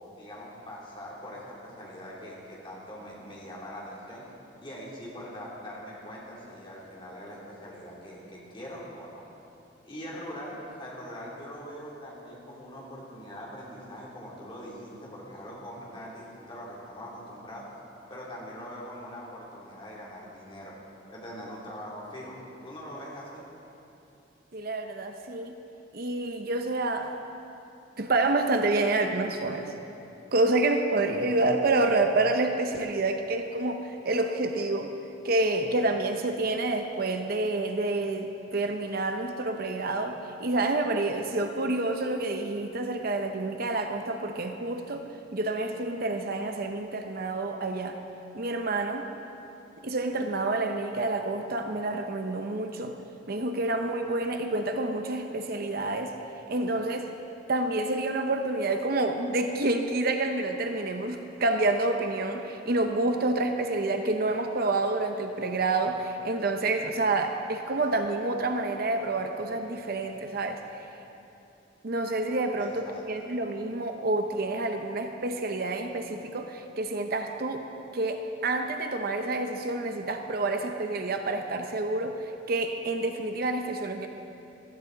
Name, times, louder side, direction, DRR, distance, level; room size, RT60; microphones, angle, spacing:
voice 1, 0.0-4.2 4.6-9.2 9.8-17.7 18.1-20.7 21.1-23.4 72.6-73.0, equal, 30° left, -5 dB, 2.9 m, -42 dB
voice 2, 24.5-25.5 25.9-27.1 28.0-29.7 30.3-34.9 35.2-47.9 48.3-49.1 49.8-52.9 53.3-56.1 56.5-57.1 57.5-70.6 71.8-77.7 77.9-82.2 82.5-84.1, right 2 dB, 55° right, 5 dB, 0.7 m, -28 dB
16.0 x 14.0 x 4.0 m, 2.9 s
head